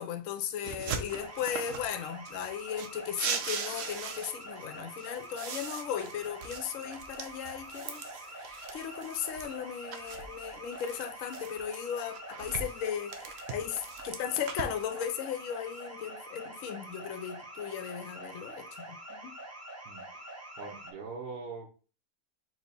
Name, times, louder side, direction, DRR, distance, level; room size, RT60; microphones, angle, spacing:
voice 1, 0.0-8.0 8.4-19.3, left 9 dB, 65° left, 0.9 m, -36 dB
sound 1, 0.6-1.9 2.3-4.6 5.0-9.5 9.9-11.8 12.1-15.0, right 6 dB, 65° right, 0.9 m, -40 dB
sound 2, 1.1-20.9, right 1 dB, 15° right, 0.7 m, -45 dB
voice 2, 19.8-21.7, right 4 dB, 85° right, 1.4 m, -43 dB
4.5 x 2.8 x 4.1 m
omnidirectional pair, 1.7 m